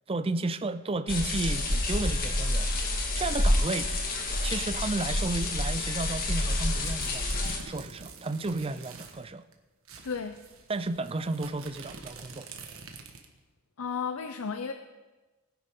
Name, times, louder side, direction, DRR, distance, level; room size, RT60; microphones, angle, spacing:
voice 1, 0.1-3.9 4.4-9.4 10.7-12.5, right 2 dB, 25° right, 0.5 m, -33 dB
sound 1, 1.1-7.6, left 1 dB, 45° left, 1.9 m, -28 dB
sound 2, 6.2-9.2 9.5-9.6 9.8-13.4, right 4 dB, 75° right, 1.5 m, -47 dB
voice 2, 10.0-10.4 13.8-14.7, left 6 dB, 85° left, 0.6 m, -33 dB
20.0 x 10.5 x 3.7 m
head